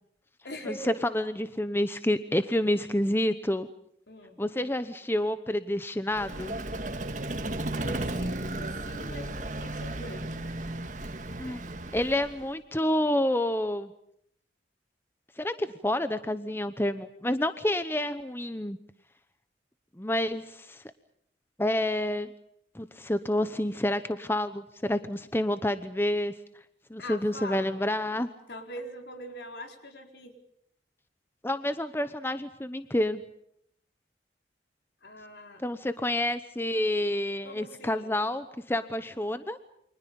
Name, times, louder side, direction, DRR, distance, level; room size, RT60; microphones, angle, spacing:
voice 1, 0.4-1.0 4.1-4.4 7.8-10.4 27.0-27.8 28.5-30.4 35.0-35.6 37.4-38.2, equal, 70° left, 5 dB, 4.4 m, -42 dB
voice 2, 1.1-3.7 4.4-6.6 11.4-11.6 11.9-13.9 15.4-18.8 20.0-20.8 21.6-22.3 22.7-26.3 26.9-28.3 31.4-33.2 35.6-39.6, left 1 dB, 15° left, 11 dB, 0.9 m, -29 dB
Vehicle, 6.1-12.5, right 1 dB, 45° right, 1.9 m, -34 dB
29.5 x 25.0 x 5.4 m, 0.72 s
head